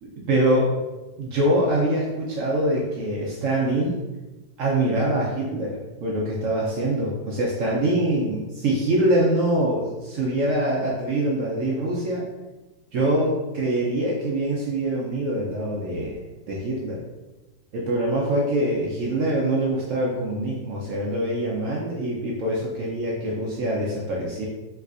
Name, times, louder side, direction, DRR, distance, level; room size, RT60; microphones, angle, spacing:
voice 1, 0.0-0.8 1.2-4.0 4.6-12.3 12.9-16.2 16.5-17.0 17.7-24.5, right 1 dB, 80° right, -3 dB, 0.7 m, -24 dB
3.4 x 3.1 x 2.4 m, 1.1 s
omnidirectional pair, 1.9 m